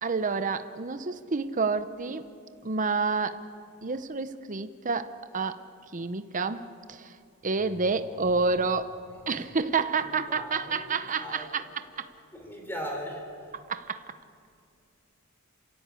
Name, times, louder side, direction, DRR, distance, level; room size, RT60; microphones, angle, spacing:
voice 1, 0.0-2.3 2.6-3.4 3.8-5.6 5.9-7.1 7.4-8.9 9.3-11.6 12.0-12.1 13.7-14.0, right 4 dB, 35° right, 0.8 m, -29 dB
voice 2, 7.6-8.2 9.1-9.2 9.5-9.6 9.9-11.7 12.3-13.5, equal, 10° left, 3.8 m, -40 dB
28.0 x 16.0 x 8.4 m
head